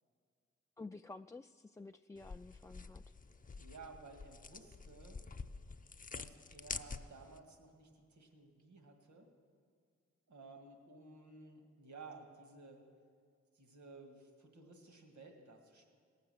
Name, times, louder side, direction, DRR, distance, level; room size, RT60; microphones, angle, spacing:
voice 1, 0.8-3.0, left 3 dB, 10° left, 7 dB, 0.3 m, -51 dB
sound 1, 2.2-7.4, left 4 dB, 30° left, 0.7 m, -48 dB
voice 2, 3.6-5.2 6.1-9.3 10.3-12.9 13.5-15.9, right 3 dB, 75° right, 4 dB, 2.0 m, -55 dB
17.5 x 6.6 x 7.8 m, 2.1 s
supercardioid pair, 45°, 29 cm